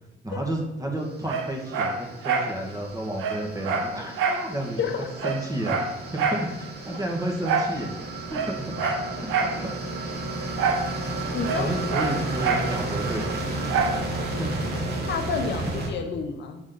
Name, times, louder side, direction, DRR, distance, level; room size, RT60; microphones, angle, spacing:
voice 1, 0.2-4.8 5.2-8.7 9.2-9.3 9.6-9.7 11.6-14.8 15.6-15.8, right 1 dB, 15° right, 1 dB, 1.2 m, -32 dB
sound 1, 1.2-15.9, right 2 dB, 55° right, 1.1 m, -33 dB
Dog, 1.3-2.5 2.9-3.0 3.2-4.5 4.8-4.9 5.2-6.5 7.4-7.8 8.3-9.6 10.6-10.9 11.2-12.7 13.7-14.0 14.5-14.6, right 5 dB, 90° right, 0.7 m, -26 dB
voice 2, 4.8-5.1 8.8-9.2 11.3-11.7 15.1-16.6, left 5 dB, 65° left, 5 dB, 0.7 m, -30 dB
8.0 x 3.1 x 3.8 m, 1.0 s
cardioid pair, 90°, 20 cm